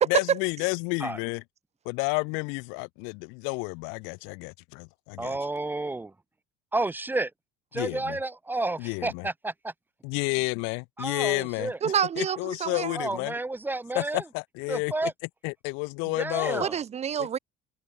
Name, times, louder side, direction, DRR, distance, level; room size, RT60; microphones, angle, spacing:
voice 1, 0.0-1.4 1.9-5.4 7.7-8.2 8.8-9.3 10.0-13.3 13.9-15.1 15.4-16.7 17.2-17.3, left 32 dB, 75° left, 0.5 m, -31 dB
voice 2, 5.2-6.1 6.7-7.3 7.7-9.7 11.0-11.8 13.0-14.2 14.7-15.1 16.1-16.8, right 2 dB, 10° right, 0.5 m, -31 dB
voice 3, 11.8-13.0 16.6-17.4, right 8 dB, 30° right, 0.9 m, -28 dB
cardioid pair, 115°, 21 cm